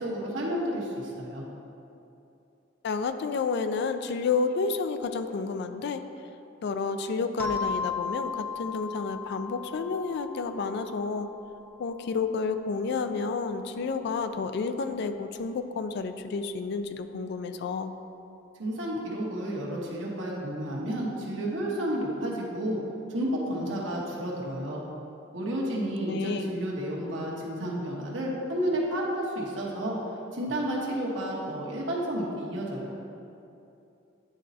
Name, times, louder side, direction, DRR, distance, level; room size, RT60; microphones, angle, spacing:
voice 1, 0.0-1.4 18.6-22.8 23.1-24.8 25.3-30.0 30.3-32.9, right 1 dB, 80° right, -4 dB, 1.2 m, -31 dB
voice 2, 2.8-6.0 6.6-11.3 11.8-17.9 26.1-26.5, left 4 dB, 60° left, 9 dB, 0.3 m, -30 dB
sound 1, 7.4-11.8, left 5 dB, 10° left, 0.6 m, -36 dB
9.7 x 4.1 x 2.7 m, 2.7 s
head